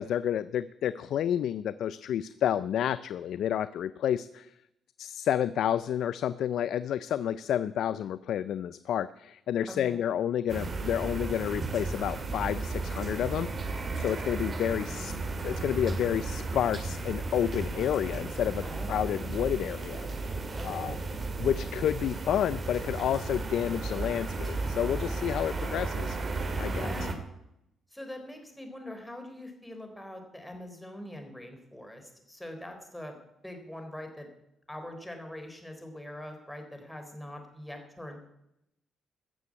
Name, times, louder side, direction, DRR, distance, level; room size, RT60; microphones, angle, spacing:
voice 1, 0.0-4.5 5.0-13.5 14.0-15.1 15.4-20.1 20.6-20.9 21.4-26.2 26.6-26.9, left 10 dB, 75° left, 14 dB, 0.4 m, -30 dB
voice 2, 9.7-10.0 18.6-19.0 20.6-21.0 26.6-27.2 27.9-33.2 33.4-34.3 34.7-38.2, left 1 dB, 5° left, 4 dB, 3.7 m, -43 dB
sound 1, 10.5-27.1, right 3 dB, 40° right, 2.3 m, -34 dB
16.5 x 6.9 x 8.5 m, 0.83 s
cardioid pair, 90°, 0 cm